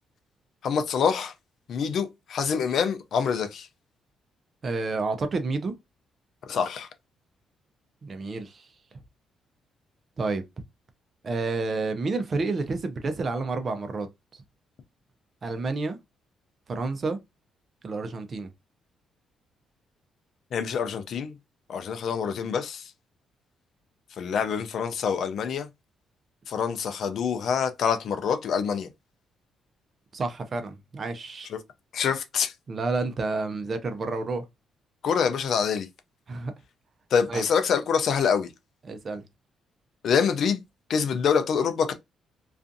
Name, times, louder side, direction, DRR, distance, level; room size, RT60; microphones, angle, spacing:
voice 1, 0.6-1.3 1.7-3.7 6.5-6.9 20.5-21.4 21.7-22.9 24.2-25.7 26.5-28.9 31.5-31.6 31.9-32.5 35.0-35.9 37.1-38.5 40.0-40.6 40.9-41.9, left 6 dB, 65° left, 0.4 m, -26 dB
voice 2, 4.6-5.7 8.0-8.7 10.2-10.4 11.2-14.1 15.4-16.0 16.7-17.2 17.8-18.5 30.1-31.5 32.7-34.4 36.3-36.5 37.3-37.4 38.8-39.2, right 3 dB, 40° right, 0.6 m, -29 dB
2.4 x 2.4 x 2.5 m
cardioid pair, 90°, 0 cm